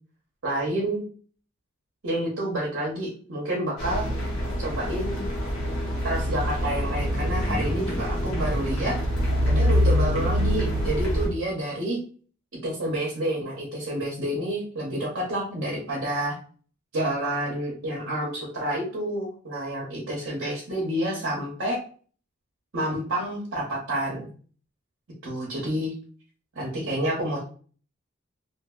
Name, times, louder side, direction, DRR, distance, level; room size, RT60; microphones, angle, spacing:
voice 1, 0.4-1.0 2.0-4.3 4.6-5.2 6.0-9.0 9.5-12.0 12.6-16.4 16.9-21.8 22.7-24.3 25.2-25.9 26.6-27.4, right 1 dB, 55° right, -4 dB, 0.8 m, -29 dB
GO Train passing Union Station Tracks Clacking, 3.8-11.3, equal, 80° left, 0.9 m, -25 dB
2.6 x 2.6 x 2.3 m, 0.42 s
head